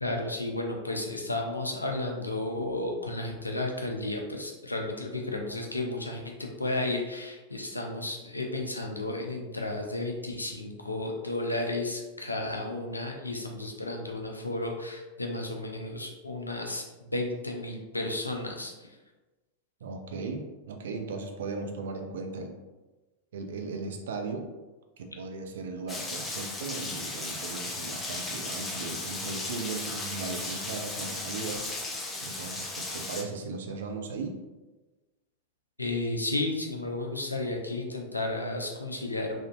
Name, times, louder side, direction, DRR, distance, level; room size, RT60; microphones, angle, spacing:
voice 1, 0.0-16.9 17.1-18.9 35.8-39.4, left 2 dB, 85° left, 2 dB, 0.4 m, -33 dB
voice 2, 19.8-22.6 23.3-24.5 25.0-31.6 32.2-34.4, right 4 dB, 60° right, 5 dB, 0.4 m, -37 dB
Rain, 25.9-33.2, left 2 dB, 15° left, 0.5 m, -36 dB
3.5 x 2.6 x 2.4 m, 1.2 s
figure-of-eight pair, 90°, 0 cm